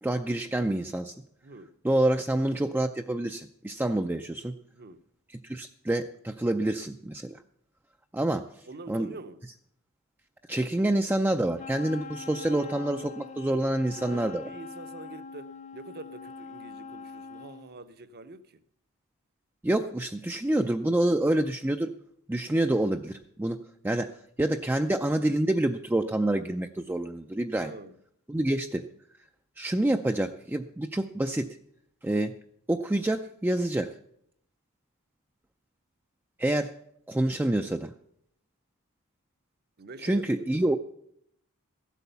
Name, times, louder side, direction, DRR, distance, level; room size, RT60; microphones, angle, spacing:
voice 1, 0.0-1.1 1.8-4.5 5.4-7.4 8.1-8.5 8.9-9.1 10.5-14.5 19.6-21.9 22.3-23.6 23.8-27.7 28.3-28.9 29.6-31.6 32.0-32.4 32.7-33.9 36.4-36.7 37.1-37.9 40.0-40.8, right 1 dB, 10° right, 0.4 m, -27 dB
voice 2, 8.7-9.4 14.0-18.6 27.6-27.9 39.8-40.2 40.5-40.8, right 2 dB, 50° right, 0.8 m, -45 dB
Wind instrument woodwind instrument, 11.6-17.7, left 4 dB, 35° left, 0.7 m, -43 dB
15.0 x 8.3 x 6.8 m
head